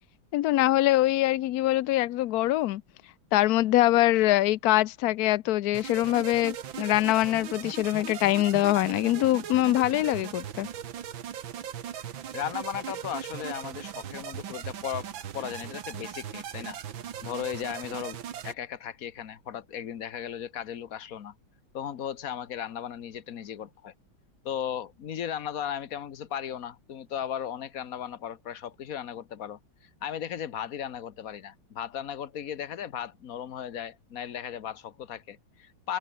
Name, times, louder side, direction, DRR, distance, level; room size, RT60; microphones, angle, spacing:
voice 1, 0.3-2.8 3.3-10.7, left 15 dB, 85° left, 0.8 m, -23 dB
sound 1, 5.7-18.5, right 9 dB, 70° right, 2.1 m, -39 dB
voice 2, 12.3-15.1 15.3-16.8 17.2-18.2 18.4-21.3 21.7-23.9 24.4-36.0, left 9 dB, 50° left, 1.4 m, -36 dB
omnidirectional pair, 2.3 m